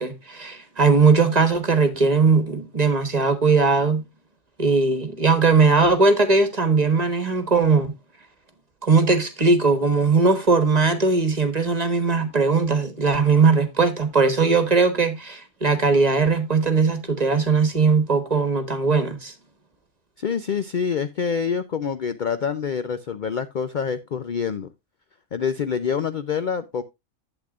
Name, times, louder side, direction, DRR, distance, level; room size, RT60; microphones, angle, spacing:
voice 1, 0.0-4.0 4.6-7.9 8.8-19.3, right 4 dB, 30° right, 1.4 m, -19 dB
voice 2, 20.2-24.7 25.3-26.8, left 6 dB, 50° left, 0.5 m, -26 dB
11.5 x 8.2 x 2.4 m
omnidirectional pair, 1.4 m